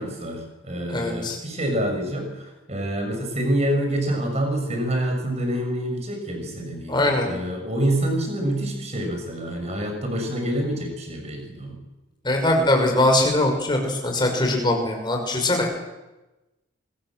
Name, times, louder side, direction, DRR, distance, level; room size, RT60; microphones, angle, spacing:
voice 1, 0.0-11.8, right 1 dB, 30° right, 3 dB, 7.1 m, -27 dB
voice 2, 0.9-1.4 6.9-7.3 12.2-15.7, left 1 dB, 20° left, 2 dB, 5.8 m, -21 dB
25.5 x 22.0 x 7.7 m, 1.1 s
head